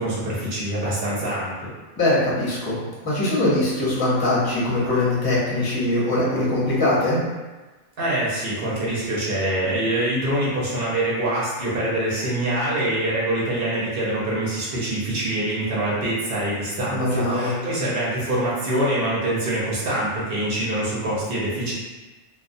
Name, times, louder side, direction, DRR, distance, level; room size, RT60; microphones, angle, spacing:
voice 1, 0.0-1.7 8.0-21.7, right 1 dB, 55° right, -7 dB, 0.8 m, -25 dB
voice 2, 2.0-2.8 3.0-7.2 16.9-17.5, left 1 dB, 25° left, -8 dB, 0.6 m, -22 dB
2.2 x 2.2 x 2.6 m, 1.2 s
omnidirectional pair, 1.3 m